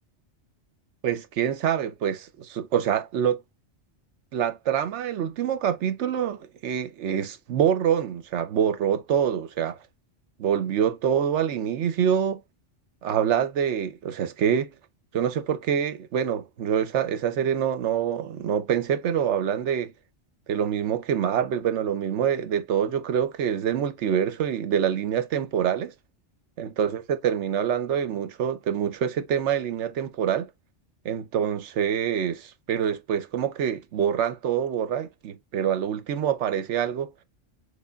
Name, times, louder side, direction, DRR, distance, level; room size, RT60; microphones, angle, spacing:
voice 1, 1.0-3.4 4.3-9.8 10.4-12.4 13.0-14.7 15.1-19.9 20.5-25.9 26.6-30.5 31.0-37.1, right 8 dB, 75° right, 1.0 m, -26 dB
6.3 x 3.4 x 2.3 m
omnidirectional pair, 1.2 m